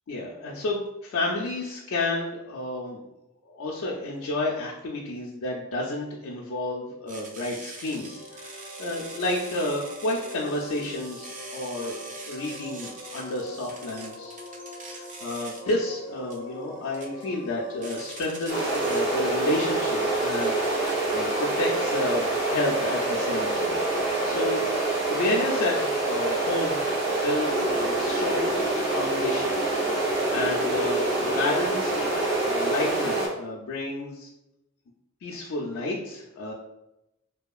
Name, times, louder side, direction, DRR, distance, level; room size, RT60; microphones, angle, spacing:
voice 1, 0.1-3.0 3.4-14.4 15.0-23.8 24.2-24.7 25.1-29.6 30.3-34.3 35.2-36.5, left 2 dB, 80° left, -3 dB, 0.4 m, -31 dB
sound 1, 7.1-21.2, right 3 dB, 40° right, 0.4 m, -44 dB
sound 2, 7.7-22.4, equal, 20° left, 0.5 m, -43 dB
sound 3, 18.5-33.3, right 2 dB, 55° right, 0.9 m, -26 dB
2.7 x 2.3 x 2.3 m, 0.88 s
head